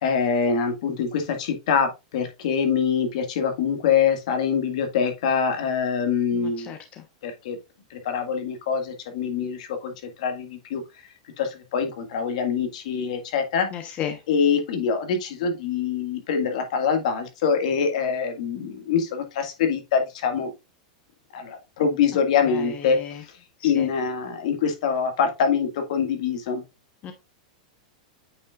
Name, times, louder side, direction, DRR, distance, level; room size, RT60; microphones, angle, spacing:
voice 1, 0.0-6.7 7.2-7.6 7.9-10.8 11.4-13.7 14.3-20.5 21.3-23.0 23.6-26.6, left 6 dB, 70° left, 1.9 m, -24 dB
voice 2, 6.4-6.8 13.7-14.2 23.0-23.1 23.6-23.8 27.0-27.1, left 9 dB, 35° left, 1.0 m, -33 dB
8.6 x 5.4 x 2.4 m
supercardioid pair, 135°, 4 cm